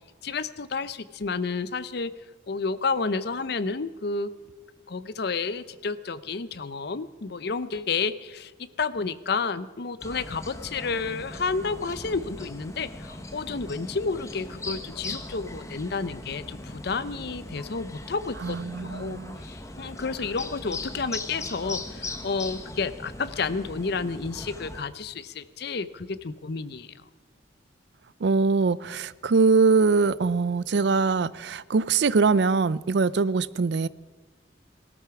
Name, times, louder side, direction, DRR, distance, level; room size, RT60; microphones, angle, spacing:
voice 1, 0.2-2.1 2.5-4.3 4.9-26.9, left 4 dB, 55° left, 0.6 m, -31 dB
sound 1, 10.0-24.8, left 2 dB, 15° left, 1.1 m, -39 dB
voice 2, 18.4-19.4 28.2-33.9, right 4 dB, 60° right, 0.4 m, -22 dB
17.0 x 13.5 x 5.9 m
head